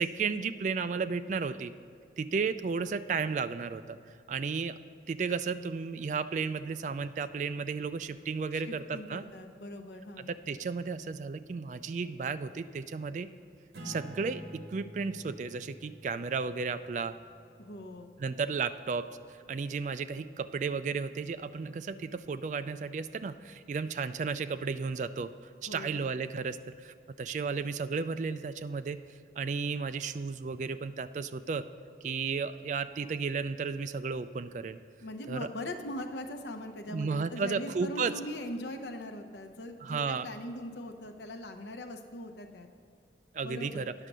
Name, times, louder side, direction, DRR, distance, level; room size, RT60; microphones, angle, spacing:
voice 1, 0.0-1.7 2.2-4.0 4.3-4.8 5.1-9.2 10.2-13.3 13.8-17.2 18.2-19.1 19.5-25.3 25.6-29.0 29.4-31.7 32.0-34.8 35.3-35.5 36.9-38.1 39.8-40.3 43.3-43.9, right 5 dB, 45° right, 12 dB, 0.3 m, -33 dB
voice 2, 8.5-10.3 17.6-18.1 25.7-26.2 35.0-42.7 43.4-43.9, left 1 dB, 75° left, 6 dB, 0.8 m, -41 dB
Acoustic guitar / Strum, 13.7-18.7, right 1 dB, 75° right, 1.3 m, -49 dB
9.8 x 6.5 x 6.1 m, 2.5 s
head